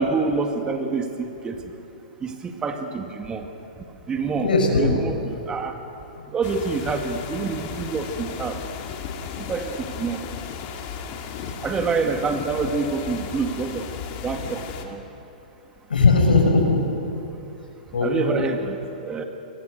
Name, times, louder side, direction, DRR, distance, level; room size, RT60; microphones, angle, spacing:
voice 1, 0.0-1.6 2.2-3.5 4.1-5.8 6.3-8.6 9.4-10.2 11.6-13.9 14.2-15.0 18.0-19.2, right 4 dB, 15° right, 5 dB, 2.1 m, -27 dB
voice 2, 4.4-4.9 15.9-17.0 17.9-18.3, left 3 dB, 85° left, 2 dB, 6.4 m, -19 dB
sound 1, 6.4-14.8, left 7 dB, 40° left, 2.8 m, -35 dB
28.0 x 23.5 x 6.7 m, 2.9 s
hypercardioid pair, 125°, 5 cm